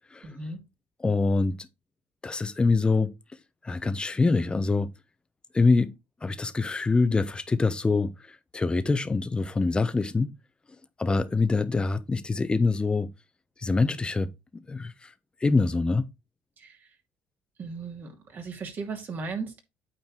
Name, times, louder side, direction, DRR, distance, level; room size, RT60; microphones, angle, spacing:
voice 1, 0.2-0.6 16.6-16.8 17.6-19.6, right 4 dB, 45° right, 2.6 m, -36 dB
voice 2, 1.0-1.7 2.2-3.1 3.6-4.9 5.5-5.9 6.2-10.3 11.0-13.1 13.6-14.3 14.7-15.1 15.4-16.1, left 3 dB, 20° left, 1.1 m, -25 dB
8.7 x 4.5 x 4.5 m
supercardioid pair, 80°, 5 cm